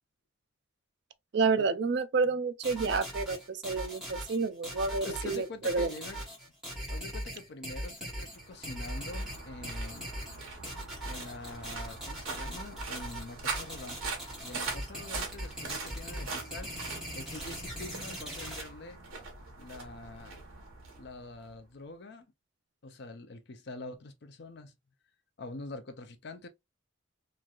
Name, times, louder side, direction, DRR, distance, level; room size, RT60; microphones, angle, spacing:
voice 1, 1.3-5.9, right 4 dB, 55° right, 0.4 m, -29 dB
sound 1, 2.6-18.6, right 1 dB, 5° right, 1.3 m, -40 dB
voice 2, 4.8-6.2 6.9-10.2 11.0-14.1 14.4-19.0 19.6-20.4 20.9-22.3 22.8-24.7 25.4-26.5, left 2 dB, 55° left, 0.5 m, -45 dB
sound 2, 8.2-21.6, right 4 dB, 85° right, 1.0 m, -42 dB
3.0 x 2.5 x 2.3 m
head